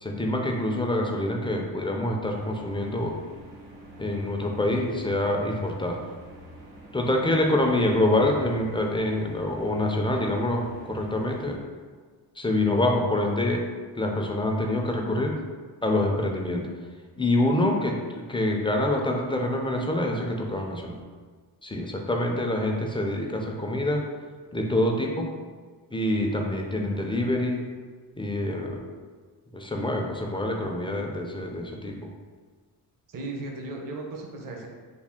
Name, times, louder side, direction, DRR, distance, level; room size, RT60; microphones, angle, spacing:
voice 1, 0.0-3.2 4.0-6.0 6.9-11.6 12.4-13.7 14.0-15.4 15.8-16.7 17.2-21.0 21.6-24.0 24.5-25.3 25.9-27.7 28.2-28.8 29.5-32.1, left 1 dB, 15° left, 1 dB, 0.3 m, -26 dB
sound 1, 2.2-11.5, right 1 dB, 80° right, 0.8 m, -47 dB
voice 2, 33.1-34.7, right 2 dB, 50° right, 0 dB, 0.7 m, -36 dB
3.4 x 2.3 x 3.5 m, 1.5 s
cardioid pair, 85°, 43 cm